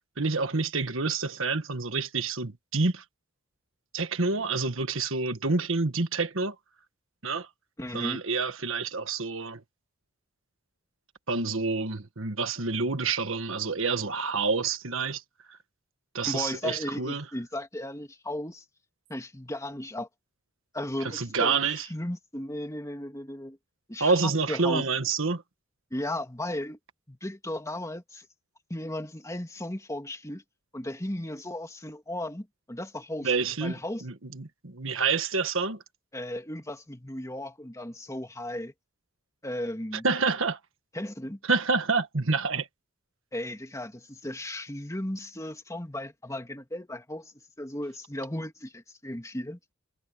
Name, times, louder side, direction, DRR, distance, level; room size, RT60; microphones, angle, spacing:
voice 1, 0.2-3.0 3.9-6.5 7.2-7.5 7.9-9.6 11.3-15.2 15.5-15.6 16.1-17.2 21.0-21.9 24.0-25.4 33.2-33.7 34.0-35.8 40.0-40.6 41.5-42.7, right 4 dB, 65° right, 1.7 m, -28 dB
voice 2, 7.8-8.2 16.2-18.6 19.1-20.1 20.7-23.6 23.9-24.9 25.9-26.8 27.1-28.3 28.7-30.4 30.7-33.3 33.6-34.0 36.1-38.7 39.4-40.1 40.9-41.4 43.3-47.3 47.6-49.6, left 1 dB, 15° left, 2.6 m, -35 dB
head